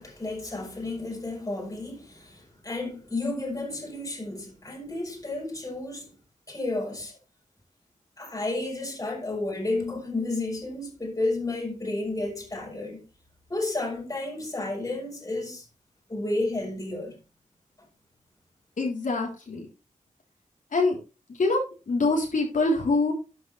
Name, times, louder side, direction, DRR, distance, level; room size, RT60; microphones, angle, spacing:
voice 1, 0.0-6.1 6.5-7.1 8.2-13.0 13.5-15.6 16.1-17.2, left 2 dB, 25° left, 4.7 m, -32 dB
voice 2, 18.8-19.7 20.7-21.0 21.3-21.6 21.9-23.1, left 3 dB, 70° left, 3.7 m, -24 dB
12.5 x 8.5 x 3.4 m
wide cardioid pair, 120°, 14 cm